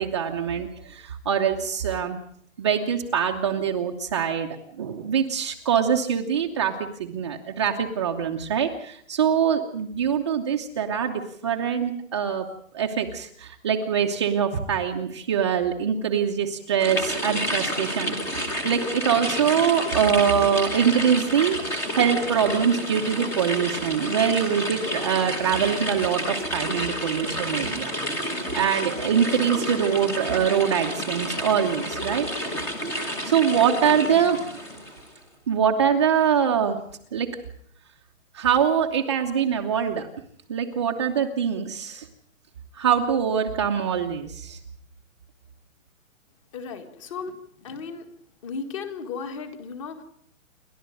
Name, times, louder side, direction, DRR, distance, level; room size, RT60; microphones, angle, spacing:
voice 1, 0.0-2.2 2.6-12.5 12.7-18.1 18.6-27.9 28.5-32.3 33.2-34.4 35.5-36.8 37.1-37.3 38.3-40.1 40.5-42.1 42.8-44.6, right 8 dB, 20° right, 2 dB, 0.9 m, -24 dB
sound 1, 16.8-35.1, equal, 5° left, 1.1 m, -30 dB
voice 2, 46.5-48.1 48.4-50.0, left 5 dB, 25° left, 9 dB, 1.8 m, -35 dB
29.0 x 12.0 x 9.1 m, 0.66 s
hypercardioid pair, 175°, 40 cm